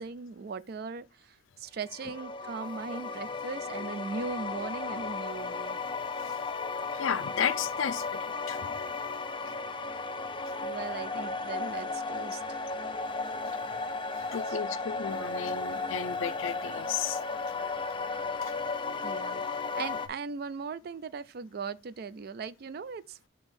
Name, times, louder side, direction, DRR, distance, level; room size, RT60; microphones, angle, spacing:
voice 1, 0.0-5.8 10.6-12.4 14.1-14.3 19.0-23.3, right 5 dB, 50° right, 0.4 m, -39 dB
sound 1, 1.9-20.1, left 4 dB, 25° left, 0.4 m, -35 dB
voice 2, 6.9-8.8 13.4-13.6 14.3-17.2 18.4-18.5, left 8 dB, 80° left, 0.5 m, -34 dB
6.2 x 2.9 x 5.3 m
head